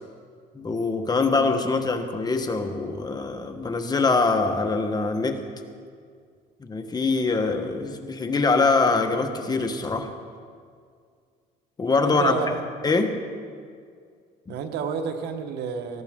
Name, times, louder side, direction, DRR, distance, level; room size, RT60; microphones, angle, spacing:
voice 1, 0.5-5.4 6.6-10.1 11.8-13.2 14.5-14.6, left 3 dB, 25° left, 5 dB, 1.2 m, -24 dB
voice 2, 12.0-12.6 14.5-16.0, right 6 dB, 80° right, 7 dB, 1.3 m, -30 dB
19.0 x 14.5 x 3.7 m, 2.1 s
cardioid pair, 110°, 17 cm